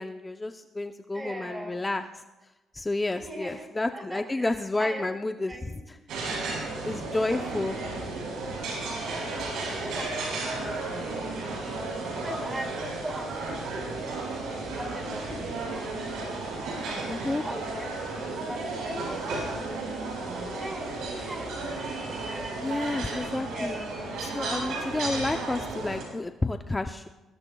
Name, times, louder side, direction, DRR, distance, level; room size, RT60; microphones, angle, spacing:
voice 1, 0.0-2.2 2.7-6.0 6.8-7.8 17.0-17.4 21.1-21.3 22.6-23.8 24.2-27.1, left 2 dB, 20° left, 6 dB, 0.6 m, -30 dB
voice 2, 1.1-1.8 3.2-3.7 3.9-4.5 4.8-5.2 5.5-5.8 7.5-7.6 8.6-11.4 12.1-15.2 15.6-15.9 16.8-17.9 18.2-20.9 21.2-23.9, right 1 dB, 25° right, 2 dB, 4.7 m, -41 dB
sound 1, 6.1-26.0, right 3 dB, 85° right, 6.5 m, -33 dB
23.0 x 19.5 x 2.3 m, 1.1 s
cardioid pair, 90°, 0 cm